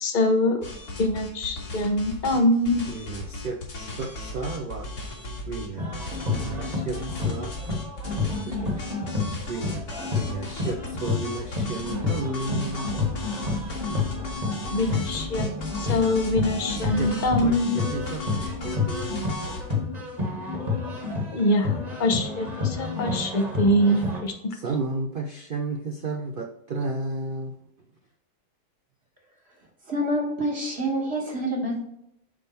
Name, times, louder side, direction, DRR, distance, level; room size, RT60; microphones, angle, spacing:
voice 1, 0.0-0.6 1.0-2.8 14.7-15.5 15.8-17.8 21.3-24.5, left 1 dB, 35° left, 6 dB, 0.9 m, -24 dB
sound 1, 0.6-5.7 5.9-19.7, left 2 dB, 65° left, 2.4 m, -36 dB
voice 2, 2.9-3.6 3.9-4.9 5.5-5.9 6.3-7.5 8.5-8.8 9.5-9.8 10.1-13.0 17.0-17.1 17.4-19.6 23.9-24.0 24.5-27.6, right 3 dB, 85° right, 3 dB, 0.4 m, -33 dB
sound 2, 5.8-24.2, left 3 dB, 25° right, 1.4 m, -30 dB
voice 3, 29.8-31.9, right 1 dB, 40° right, 0 dB, 1.5 m, -27 dB
8.5 x 3.5 x 4.3 m, 0.76 s
omnidirectional pair, 1.8 m